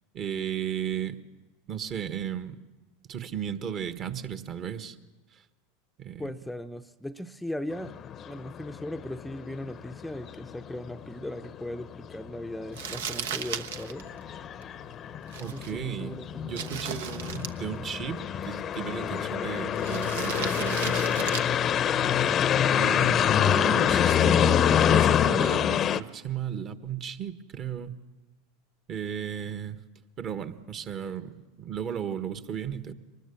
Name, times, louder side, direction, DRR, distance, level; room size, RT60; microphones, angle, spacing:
voice 1, 0.1-1.2 1.7-2.6 3.1-5.0 6.0-6.3 15.4-16.2 16.4-21.4 22.8-27.9 28.9-29.8 30.2-32.9, right 9 dB, 40° right, 10 dB, 1.5 m, -35 dB
voice 2, 6.2-7.9 8.2-14.0 15.5-16.9, left 1 dB, 5° left, 7 dB, 0.7 m, -38 dB
sound 1, 7.7-26.0, left 9 dB, 35° left, 0.7 m, -26 dB
Crumpling crinkling, 12.7-22.9, right 7 dB, 75° right, 1.1 m, -39 dB
24.0 x 20.5 x 7.1 m, 1.2 s
hypercardioid pair, 90°, 0 cm